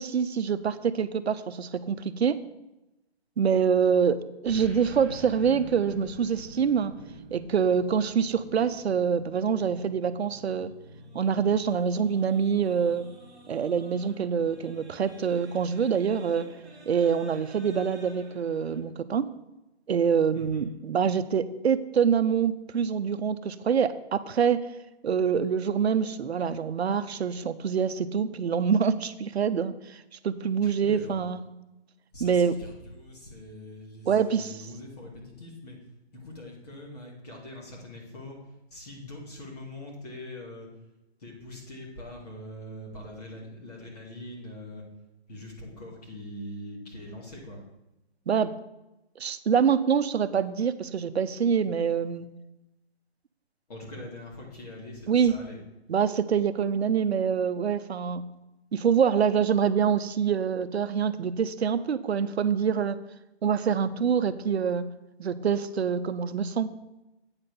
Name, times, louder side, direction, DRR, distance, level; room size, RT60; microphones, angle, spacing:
voice 1, 0.0-2.4 3.4-7.0 7.3-10.7 11.1-13.1 13.5-16.5 16.9-19.3 19.9-24.6 25.0-31.5 32.2-32.5 34.1-34.6 48.3-48.6 49.2-52.3 55.1-55.3 55.9-58.2 58.7-63.0 63.4-64.8 65.2-66.7, right 7 dB, 70° right, 13 dB, 0.7 m, -25 dB
sound 1, 4.4-18.8, right 2 dB, ahead, 1.3 m, -48 dB
voice 2, 20.3-20.6 30.6-31.3 32.1-35.8 36.1-38.4 38.7-40.7 41.2-44.8 45.3-47.6 53.7-55.6, left 1 dB, 35° left, -2 dB, 2.4 m, -43 dB
8.8 x 4.2 x 6.7 m, 0.95 s
hypercardioid pair, 170°, 33 cm